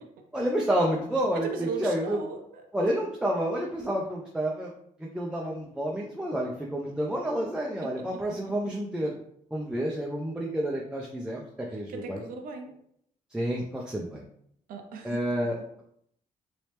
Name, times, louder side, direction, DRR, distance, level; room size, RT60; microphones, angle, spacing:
voice 1, 0.3-2.2 2.7-4.7 5.0-9.2 9.5-12.2 13.3-14.2 15.0-15.8, right 1 dB, 5° right, -2 dB, 0.4 m, -29 dB
voice 2, 1.4-2.7 7.8-8.2 11.7-12.8 14.7-15.2, right 4 dB, 85° right, 3 dB, 0.6 m, -38 dB
3.1 x 2.9 x 3.2 m, 0.68 s
cardioid pair, 130°, 14 cm